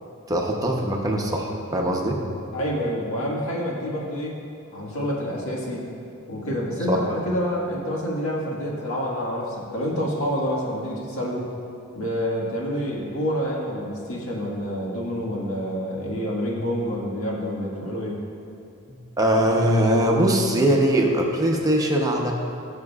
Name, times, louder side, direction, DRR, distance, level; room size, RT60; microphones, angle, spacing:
voice 1, 0.3-2.2 6.9-7.0 19.2-22.3, right 1 dB, 15° right, 0 dB, 0.8 m, -21 dB
voice 2, 2.5-4.4 4.7-5.9 6.3-11.5 11.9-18.2, equal, 75° left, -3 dB, 1.8 m, -28 dB
18.0 x 6.5 x 2.4 m, 2.6 s
head